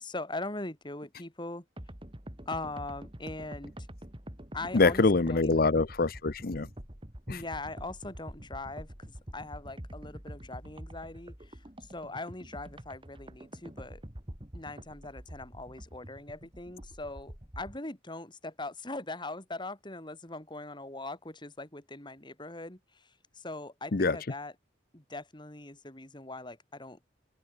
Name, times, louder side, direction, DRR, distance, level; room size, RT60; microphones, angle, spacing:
voice 1, 0.0-1.6 2.4-3.7 4.5-5.6 7.3-14.0 14.5-24.5 24.9-27.0, left 2 dB, 25° left, 3.2 m, -41 dB
sound 1, 1.8-17.8, equal, 30° right, 3.1 m, -46 dB
voice 2, 4.7-6.7 7.3-7.4 23.9-24.2, left 3 dB, 50° left, 0.7 m, -25 dB
open air
head